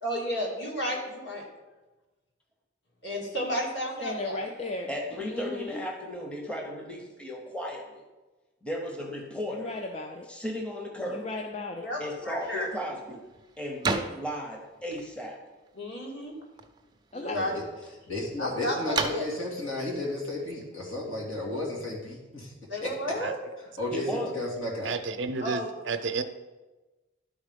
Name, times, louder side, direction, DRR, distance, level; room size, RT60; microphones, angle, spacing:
voice 1, 0.0-1.5 3.0-4.4 11.8-12.7 15.7-16.3 17.1-17.6 18.4-19.2 22.7-23.4 25.4-25.8, equal, 55° left, -2 dB, 2.0 m, -32 dB
voice 2, 4.0-4.9 5.2-5.9 9.5-10.3 11.1-11.9 17.1-17.4, left 2 dB, 30° left, 3 dB, 0.5 m, -35 dB
voice 3, 4.9-8.0 8.6-9.7 10.3-11.3 12.0-13.2 13.6-15.4 23.9-24.4, equal, 5° left, 1 dB, 0.8 m, -35 dB
sound 1, 12.2-21.3, right 4 dB, 20° right, 0.5 m, -38 dB
voice 4, 17.3-17.6 18.1-22.5 22.8-22.9 23.8-24.9, left 2 dB, 85° left, -3 dB, 2.6 m, -33 dB
voice 5, 24.9-26.2, right 4 dB, 65° right, 10 dB, 0.6 m, -31 dB
11.5 x 4.1 x 5.2 m, 1.2 s
head